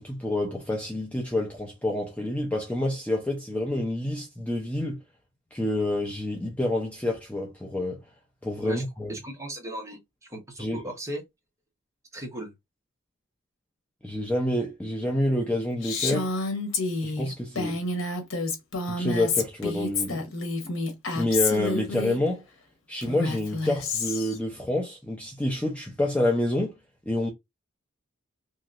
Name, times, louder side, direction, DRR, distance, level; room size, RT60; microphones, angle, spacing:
voice 1, 0.0-5.0 5.5-8.0 8.4-9.1 10.6-10.8 14.0-16.3 17.0-17.8 18.8-20.2 21.1-22.4 22.9-26.7 27.1-27.3, left 1 dB, 5° left, 0.4 m, -28 dB
voice 2, 9.1-11.2 12.1-12.5, right 1 dB, 15° right, 0.9 m, -37 dB
Female speech woman speaking, 15.8-22.2 23.0-24.4, left 3 dB, 75° left, 1.0 m, -29 dB
3.0 x 2.7 x 2.4 m
head